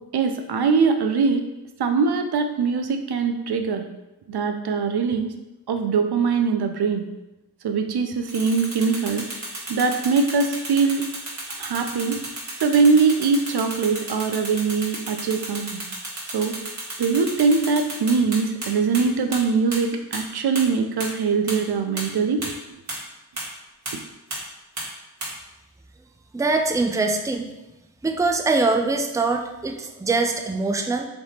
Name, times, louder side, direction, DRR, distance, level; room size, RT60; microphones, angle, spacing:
voice 1, 0.1-1.4 1.8-3.9 4.3-5.3 5.7-7.1 7.6-9.2 9.7-11.0 11.6-12.2 12.6-15.8 16.3-16.5 17.0-22.4, right 5 dB, 75° right, 6 dB, 0.5 m, -22 dB
sound 1, 8.3-18.7 18.9-19.0 19.3-19.4 19.7-19.8 20.1-20.2 20.6-20.7 21.0-21.1 21.5-21.6 22.0-22.1 22.4-22.5 22.9-23.0 23.4-23.5 23.9-24.0 24.3-24.4 24.8-24.9 25.2-25.3, right 1 dB, 45° right, 1.5 m, -32 dB
voice 2, 26.3-27.5 28.0-31.1, right 3 dB, 10° right, 4 dB, 0.4 m, -23 dB
3.3 x 2.8 x 4.2 m, 0.97 s
cardioid pair, 45°, 39 cm